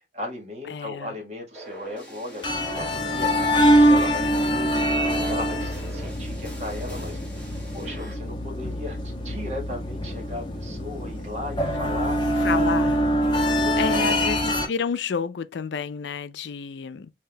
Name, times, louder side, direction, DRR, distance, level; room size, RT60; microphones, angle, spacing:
voice 1, 0.1-4.7 5.2-7.2 7.7-12.2 13.5-14.2, left 1 dB, 40° right, 1.5 m, -36 dB
voice 2, 0.7-1.2 12.4-13.1 13.7-17.1, left 6 dB, 80° left, 0.4 m, -30 dB
sound 1, 1.5-8.2, right 1 dB, 5° left, 1.8 m, -43 dB
sound 2, 2.4-14.7, equal, 25° left, 1.0 m, -24 dB
5.7 x 2.7 x 2.2 m
head